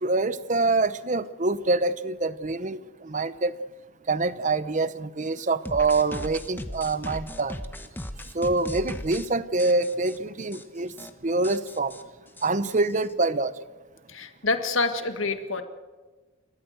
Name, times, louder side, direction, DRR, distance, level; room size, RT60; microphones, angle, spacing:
voice 1, 0.0-2.8 3.0-3.5 4.1-7.6 8.3-10.9 11.2-11.9 12.4-13.5, right 3 dB, 40° right, 15 dB, 0.8 m, -25 dB
sound 1, 5.7-9.3 9.6-10.2 10.5-10.6 10.9-11.1 11.4-13.1, left 1 dB, 10° left, 1.2 m, -38 dB
voice 2, 14.1-15.6, left 3 dB, 90° left, 8 dB, 1.8 m, -27 dB
30.0 x 13.5 x 7.9 m, 1.3 s
head